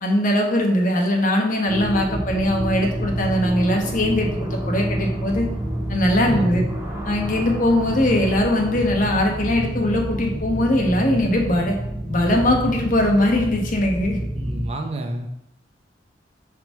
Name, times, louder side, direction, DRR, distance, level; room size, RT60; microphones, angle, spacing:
voice 1, 0.0-5.4 5.9-6.6 7.0-11.8 12.1-14.2, left 1 dB, 45° left, 1 dB, 1.2 m, -21 dB
sound 1, 1.7-14.7, equal, 10° right, 1.3 m, -28 dB
voice 2, 6.2-6.7 14.3-15.3, right 1 dB, 35° right, 4 dB, 0.6 m, -29 dB
5.4 x 4.9 x 4.6 m, 0.81 s
head